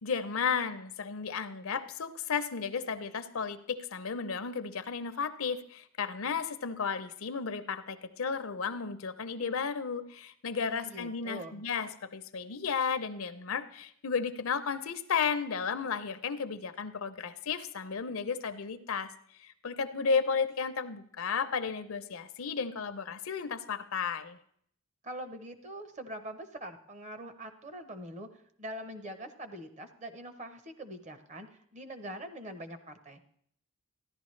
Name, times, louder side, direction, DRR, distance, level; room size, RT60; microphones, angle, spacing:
voice 1, 0.0-19.1 19.4-24.4, left 6 dB, 75° left, 11 dB, 0.6 m, -33 dB
voice 2, 10.7-11.6 25.0-33.2, right 1 dB, 35° right, 8 dB, 0.7 m, -43 dB
14.0 x 11.0 x 3.2 m, 0.65 s
head